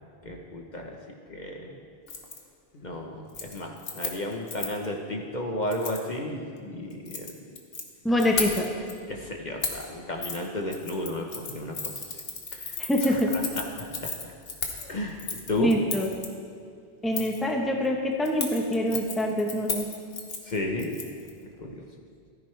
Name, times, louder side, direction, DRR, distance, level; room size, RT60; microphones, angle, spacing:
voice 1, 0.2-1.0 1.3-1.8 2.8-7.4 9.1-12.2 12.5-12.7 13.1-14.3 14.8-15.7 20.5-21.0 21.6-21.8, left 1 dB, 45° left, 1 dB, 1.2 m, -33 dB
Keys jangling, 2.1-2.4 2.7-3.0 3.3-4.9 5.7-6.0 6.9-7.8 8.2-8.9 9.6-9.9 10.2-10.4 10.7-16.3 17.1-17.4 18.3-21.3 21.6-21.7, left 4 dB, 65° left, 1.4 m, -35 dB
voice 2, 8.0-8.7 12.8-13.3 15.6-16.1 17.0-19.9, equal, ahead, 0 dB, 1.0 m, -25 dB
15.0 x 13.5 x 3.4 m, 2.2 s
omnidirectional pair, 1.1 m